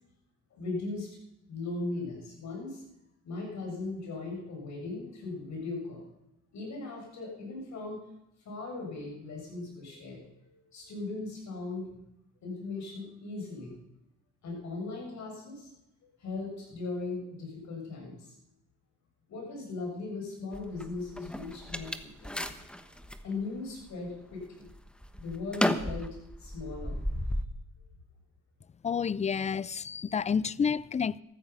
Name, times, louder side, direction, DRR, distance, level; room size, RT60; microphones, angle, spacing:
voice 1, 0.5-1.1 1.5-2.8 3.2-6.1 6.5-8.0 8.5-11.9 12.4-13.7 14.4-15.7 16.2-18.3 19.3-22.4 23.2-24.7 25.2-27.0, left 3 dB, 65° left, 7.0 m, -38 dB
sound 1, 20.5-23.3 23.8-24.3 24.7-27.4, left 1 dB, 5° left, 1.1 m, -33 dB
voice 2, 28.8-31.2, left 6 dB, 25° left, 0.4 m, -29 dB
14.0 x 14.0 x 5.6 m
cardioid pair, 90°, 30 cm